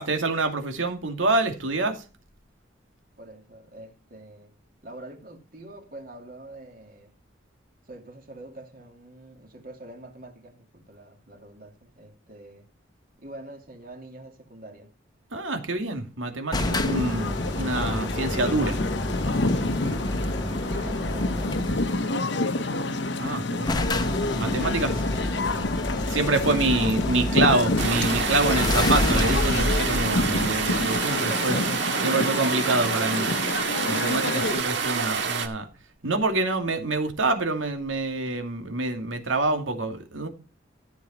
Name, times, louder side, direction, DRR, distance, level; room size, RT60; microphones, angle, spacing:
voice 1, 0.0-2.0 15.3-18.8 23.2-23.8 24.1-24.9 26.1-31.5 32.0-33.3 33.9-35.7 36.0-40.3, right 2 dB, 85° right, 2.4 m, -26 dB
voice 2, 3.2-4.5 4.8-7.1 7.9-12.7 13.2-14.9 19.8-20.3 20.5-22.9 24.4-25.7 31.1-33.2, right 1 dB, 45° right, 2.6 m, -44 dB
sound 1, 16.5-34.6, left 2 dB, 65° left, 1.1 m, -28 dB
sound 2, 16.5-22.0 23.0-23.1 23.3-23.4 23.7-31.1, left 1 dB, 20° left, 0.8 m, -29 dB
sound 3, 27.8-35.5, right 5 dB, 65° right, 1.8 m, -28 dB
14.0 x 7.5 x 4.3 m
head